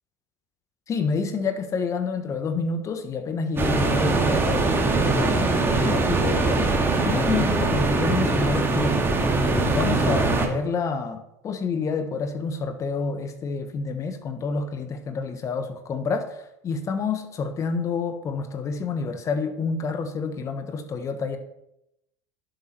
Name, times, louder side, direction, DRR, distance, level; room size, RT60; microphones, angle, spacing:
voice 1, 0.9-6.7 7.0-9.0 9.3-21.4, left 5 dB, 35° left, 8 dB, 1.3 m, -28 dB
sound 1, 3.6-10.5, right 3 dB, 25° right, 2.2 m, -22 dB
11.0 x 7.4 x 4.5 m, 0.83 s
hypercardioid pair, 90°, 9 cm